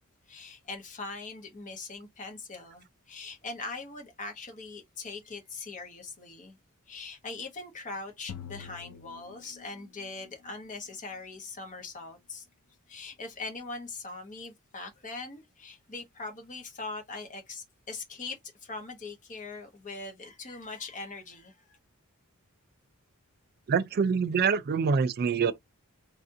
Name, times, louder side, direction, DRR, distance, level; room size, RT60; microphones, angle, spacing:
voice 1, 0.3-6.6 6.9-12.5 12.9-21.8, left 3 dB, 35° left, 1.0 m, -41 dB
sound 1, 8.3-10.1, left 7 dB, 85° left, 0.5 m, -45 dB
voice 2, 23.7-25.5, right 6 dB, 45° right, 0.3 m, -25 dB
3.3 x 2.5 x 2.6 m
head